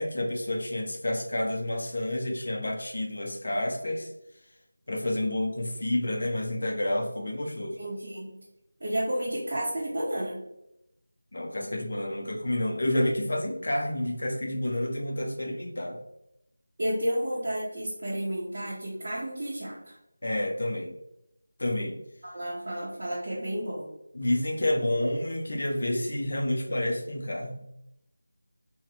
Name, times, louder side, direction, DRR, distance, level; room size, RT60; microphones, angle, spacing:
voice 1, 0.0-4.1 4.9-7.8 11.3-16.0 20.2-20.9 21.6-22.0 24.1-27.6, left 1 dB, 50° left, 1 dB, 0.6 m, -29 dB
voice 2, 7.7-8.4 8.8-10.4 16.8-20.0 22.2-23.9, equal, 35° right, -8 dB, 0.7 m, -31 dB
2.8 x 2.1 x 3.9 m, 0.83 s
figure-of-eight pair, 175°, 0 cm